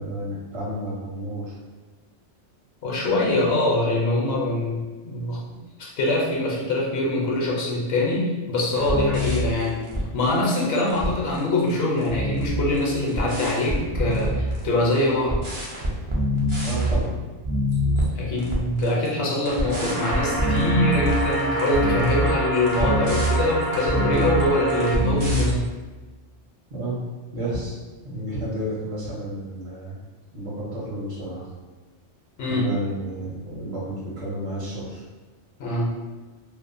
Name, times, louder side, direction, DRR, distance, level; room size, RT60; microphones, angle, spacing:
voice 1, 0.0-1.5 16.6-17.2 26.7-27.0 27.3-27.8 28.0-30.0 30.3-31.4 32.5-35.0, equal, 65° right, -7 dB, 1.1 m, -31 dB
voice 2, 2.8-9.9 10.1-15.4 17.8-25.7 32.4-32.6 35.6-36.0, left 2 dB, 65° left, -3 dB, 0.8 m, -24 dB
sound 1, 8.7-10.5 10.8-11.4 11.7-15.0 15.3-17.0 17.4-18.1 18.4-25.6, equal, 40° right, 0.4 m, -25 dB
sound 2, 19.6-24.9, right 2 dB, 90° right, 1.4 m, -28 dB
2.8 x 2.1 x 2.5 m, 1.2 s
omnidirectional pair, 1.2 m